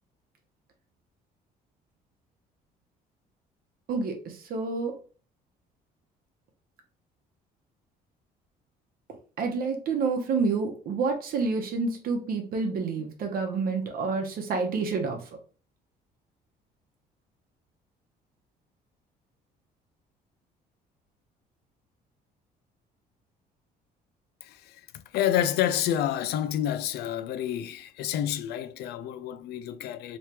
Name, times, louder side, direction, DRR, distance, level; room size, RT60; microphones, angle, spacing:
voice 1, 3.9-5.0 9.4-15.2, right 4 dB, 60° right, 0.9 m, -28 dB
voice 2, 24.4-24.8 25.1-30.2, left 11 dB, 75° left, 0.4 m, -29 dB
3.3 x 3.1 x 2.9 m
cardioid pair, 110°, 17 cm